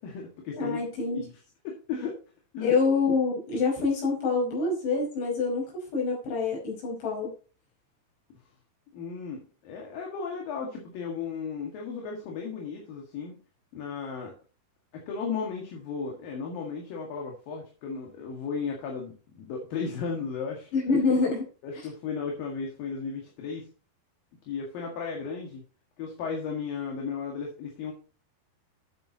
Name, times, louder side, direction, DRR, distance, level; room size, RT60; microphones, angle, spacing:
voice 1, 0.0-1.4 1.6-2.2 2.5-2.7 8.9-13.4 13.7-14.3 14.9-21.0 21.6-23.7 24.5-25.6 26.0-27.9, left 5 dB, 60° left, 0 dB, 3.5 m, -35 dB
voice 2, 0.6-1.3 2.6-7.3 20.7-21.5, left 4 dB, 85° left, -3 dB, 7.6 m, -26 dB
13.0 x 9.1 x 2.9 m, 0.37 s
omnidirectional pair, 5.0 m